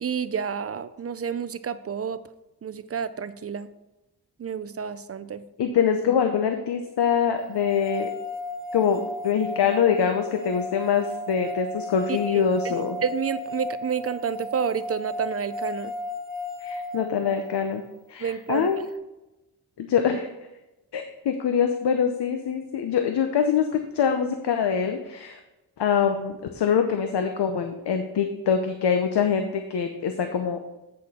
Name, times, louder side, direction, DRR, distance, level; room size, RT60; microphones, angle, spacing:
voice 1, 0.0-2.2 2.6-3.7 4.4-5.4 12.1-15.9 18.2-18.7, right 7 dB, 40° right, 13 dB, 0.4 m, -30 dB
voice 2, 5.6-8.1 8.7-13.0 16.6-17.8 18.1-18.8 19.8-20.3 20.9-25.4 25.8-30.6, left 7 dB, 85° left, 6 dB, 0.7 m, -24 dB
sound 1, 7.5-17.7, left 1 dB, 55° right, 1.3 m, -35 dB
8.7 x 6.5 x 4.2 m, 0.98 s
wide cardioid pair, 125°, 40 cm